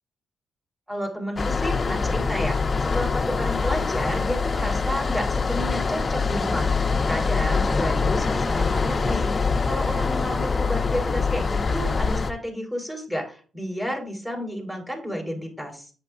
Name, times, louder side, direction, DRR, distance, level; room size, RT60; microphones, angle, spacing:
voice 1, 0.9-6.7 7.1-9.3 9.6-15.9, equal, 10° right, 2 dB, 4.3 m, -31 dB
sound 1, 1.4-12.3, left 4 dB, 40° left, 0.8 m, -24 dB
7.9 x 7.6 x 2.6 m, 0.39 s
hypercardioid pair, 45°, 0 cm